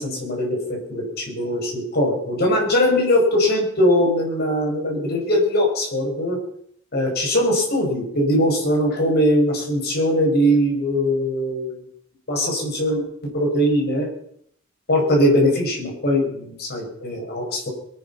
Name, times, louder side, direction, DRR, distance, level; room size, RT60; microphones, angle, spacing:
voice 1, 0.0-6.4 6.9-11.8 12.3-14.1 14.9-17.7, equal, 50° left, -1 dB, 5.7 m, -21 dB
23.0 x 9.4 x 5.8 m, 0.68 s
head